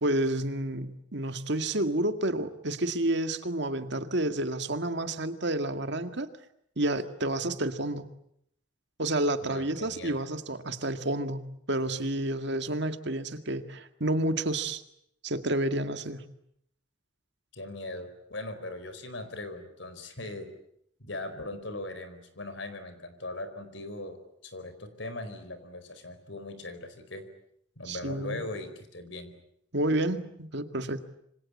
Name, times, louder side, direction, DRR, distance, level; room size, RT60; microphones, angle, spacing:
voice 1, 0.0-6.3 6.8-8.1 9.0-14.8 15.2-16.2 27.9-28.4 29.7-31.1, right 1 dB, 60° right, 9 dB, 2.0 m, -30 dB
voice 2, 9.4-10.2 17.5-20.5 21.0-27.2 27.8-29.3, left 2 dB, 70° left, 11 dB, 4.6 m, -40 dB
27.5 x 25.0 x 8.6 m, 0.71 s
head